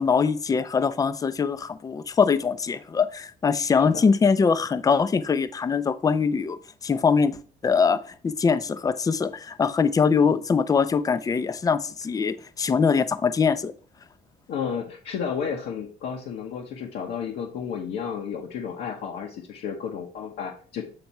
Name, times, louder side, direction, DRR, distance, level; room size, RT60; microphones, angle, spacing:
voice 1, 0.0-13.7, left 5 dB, 20° left, 13 dB, 0.5 m, -23 dB
voice 2, 14.5-20.8, left 7 dB, 75° left, -1 dB, 1.0 m, -32 dB
7.9 x 3.4 x 4.2 m, 0.43 s
cardioid pair, 110°, 17 cm